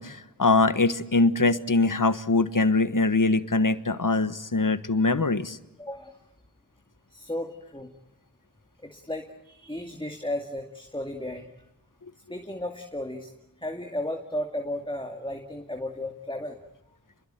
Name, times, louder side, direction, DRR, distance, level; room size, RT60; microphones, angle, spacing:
voice 1, 0.0-5.6, left 3 dB, 60° left, 12 dB, 1.4 m, -23 dB
voice 2, 5.8-6.2 7.1-7.9 8.8-11.5 12.3-13.3 13.6-16.6, left 1 dB, 15° left, 3 dB, 2.3 m, -34 dB
29.5 x 22.0 x 9.0 m, 0.89 s
wide cardioid pair, 40°, 35 cm